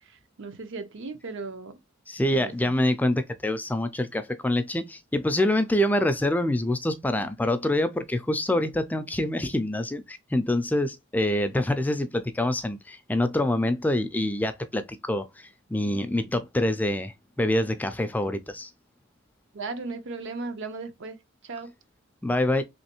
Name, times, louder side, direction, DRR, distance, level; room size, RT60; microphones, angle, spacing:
voice 1, 0.4-1.8 2.3-2.7 19.5-21.2 21.5-21.7, right 3 dB, 65° right, 0.7 m, -36 dB
voice 2, 2.1-18.7 22.2-22.6, left 1 dB, 10° left, 0.3 m, -26 dB
3.2 x 3.0 x 2.9 m
head